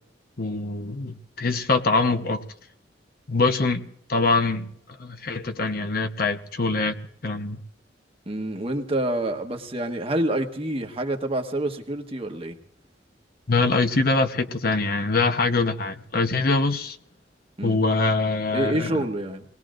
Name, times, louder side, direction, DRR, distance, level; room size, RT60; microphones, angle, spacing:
voice 1, 0.4-2.4 3.3-4.7 5.0-7.6 13.5-17.0 17.6-19.0, left 3 dB, 55° left, 1.0 m, -24 dB
voice 2, 8.3-12.6 17.6-17.8 18.5-19.4, right 1 dB, 30° right, 1.3 m, -27 dB
28.5 x 19.5 x 2.6 m
head